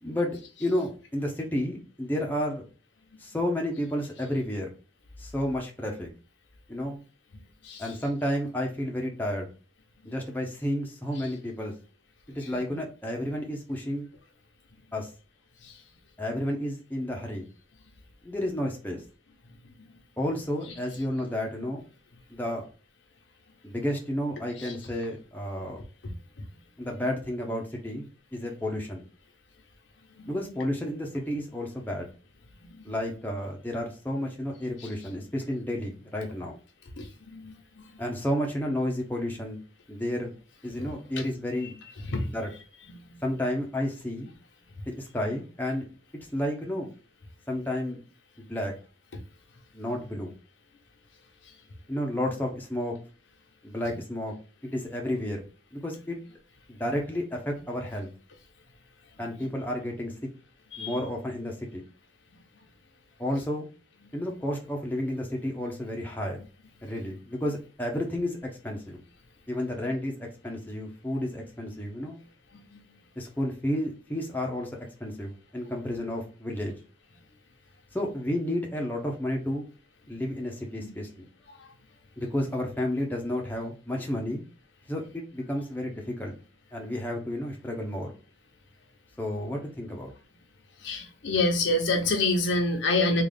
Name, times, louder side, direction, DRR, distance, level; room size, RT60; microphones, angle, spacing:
voice 1, 0.0-2.6 3.2-4.7 5.2-6.1 6.7-7.0 7.8-9.5 10.1-11.7 12.3-14.1 14.9-15.1 16.2-17.4 18.2-19.0 20.2-21.8 22.3-22.6 23.6-25.8 26.8-28.0 28.3-29.1 30.3-32.1 32.8-36.6 38.0-39.6 39.9-40.3 40.6-41.8 42.3-42.5 43.2-44.3 44.9-45.9 46.3-46.9 47.5-48.0 48.5-48.7 49.7-50.3 51.9-53.0 53.6-54.3 54.6-55.4 55.7-56.2 56.7-58.1 59.2-60.1 60.8-61.8 63.2-63.7 64.1-66.4 66.8-69.0 69.5-72.2 73.2-74.7 75.0-76.7 77.9-79.7 80.1-81.3 82.2-84.4 84.9-86.3 86.7-88.1 89.2-90.1, left 1 dB, 10° left, 0.7 m, -31 dB
voice 2, 90.8-93.2, left 2 dB, 70° left, 0.9 m, -26 dB
3.7 x 2.4 x 3.3 m
head